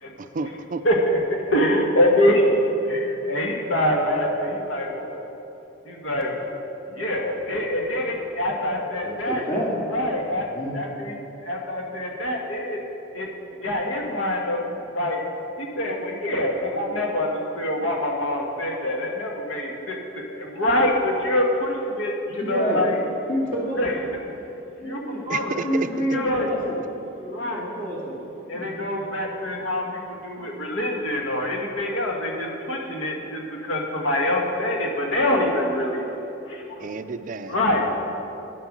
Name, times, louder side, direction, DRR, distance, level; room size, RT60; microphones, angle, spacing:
voice 1, 0.2-0.8 25.3-26.1 36.8-37.6, right 4 dB, 40° right, 11 dB, 0.4 m, -30 dB
voice 2, 0.8-5.3 5.8-6.4 6.9-9.5 9.9-10.5 10.7-12.8 13.1-13.3 13.6-14.7 14.9-15.2 15.6-23.0 23.8-23.9 24.8-25.0 25.2-25.5 26.1-26.5 27.3-27.8 28.5-36.0 36.5-36.9 37.5-37.9, left 1 dB, 80° left, 0 dB, 1.5 m, -25 dB
voice 3, 9.0-9.7 10.5-10.8 22.4-22.8 23.3-24.1 24.8-28.3 28.5-29.0, equal, 45° left, -5 dB, 2.2 m, -29 dB
9.4 x 7.7 x 6.1 m, 2.9 s
head